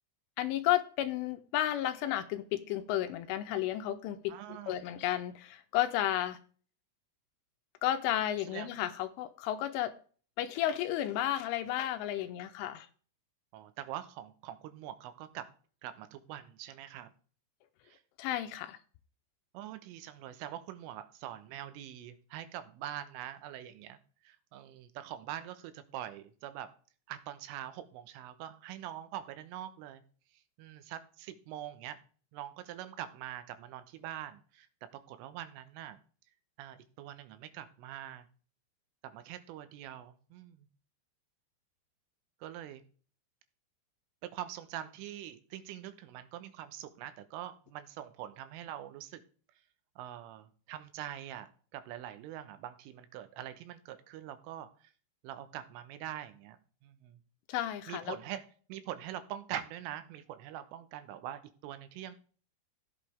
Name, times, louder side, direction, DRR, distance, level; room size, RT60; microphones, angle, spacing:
voice 1, 0.4-4.3 4.7-6.4 7.8-9.9 10.4-12.9 18.2-18.8 57.5-58.2, left 12 dB, 80° left, 10 dB, 3.0 m, -32 dB
voice 2, 4.3-4.8 8.5-8.7 13.5-15.5 15.8-17.1 17.8-18.0 19.6-24.0 24.2-26.7 27.1-30.0 30.6-32.0 32.3-36.0 36.6-38.3 39.0-40.7 42.4-42.8 44.2-49.2 50.0-51.5 51.7-54.7 55.2-56.6 56.8-57.2 57.9-62.2, right 12 dB, 85° right, 11 dB, 3.5 m, -44 dB
15.5 x 8.3 x 3.5 m, 0.42 s
omnidirectional pair, 5.7 m